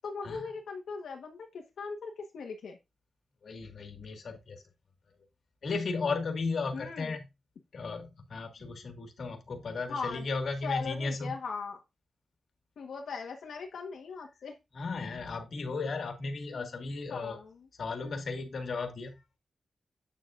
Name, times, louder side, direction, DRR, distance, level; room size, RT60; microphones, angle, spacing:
voice 1, 0.0-2.8 6.7-7.2 9.9-10.2 10.6-11.8 12.8-14.5 17.1-17.7 18.0-18.2, left 5 dB, 90° left, 1.3 m, -39 dB
voice 2, 3.4-4.6 5.6-7.2 7.7-11.4 14.7-17.4 17.8-19.2, left 4 dB, 60° left, 1.8 m, -35 dB
8.3 x 7.3 x 2.5 m
wide cardioid pair, 125°, 0 cm